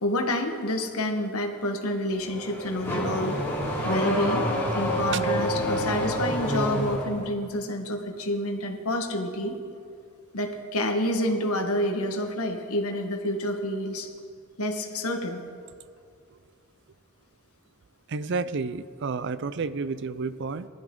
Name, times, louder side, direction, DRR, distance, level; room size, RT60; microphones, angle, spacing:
voice 1, 0.0-3.4 3.8-4.5 4.7-9.6 10.3-14.1 14.6-15.4, left 1 dB, 85° left, 4 dB, 1.4 m, -28 dB
Car / Accelerating revving vroom, 2.1-7.1, equal, 10° left, 3.7 m, -28 dB
voice 2, 18.1-20.7, right 4 dB, 55° right, 14 dB, 0.5 m, -30 dB
19.5 x 12.0 x 3.8 m, 2.3 s
head